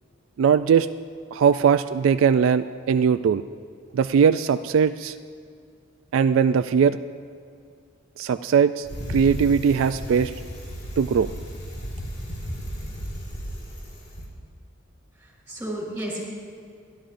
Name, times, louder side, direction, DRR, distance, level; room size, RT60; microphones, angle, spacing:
voice 1, 0.4-0.9 1.3-3.4 3.9-5.1 6.1-7.0 8.2-10.3 11.0-11.3, right 7 dB, 70° right, 11 dB, 0.3 m, -20 dB
Bicycle, 8.8-14.3, equal, 55° left, 2.7 m, -34 dB
voice 2, 15.2-16.2, right 1 dB, 10° right, -3 dB, 3.7 m, -33 dB
28.0 x 11.0 x 2.6 m, 2.3 s
head